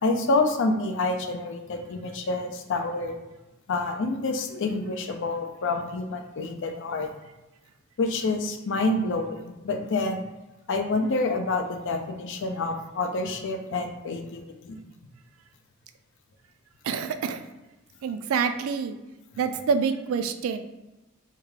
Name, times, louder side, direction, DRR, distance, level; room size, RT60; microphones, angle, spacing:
voice 1, 0.0-3.2 3.7-7.1 8.0-10.2 10.7-14.8, left 3 dB, 60° left, 6 dB, 0.4 m, -28 dB
voice 2, 16.8-17.4 18.0-18.9 19.4-20.6, right 6 dB, 70° right, 9 dB, 0.3 m, -27 dB
3.5 x 2.4 x 3.2 m, 1.0 s
head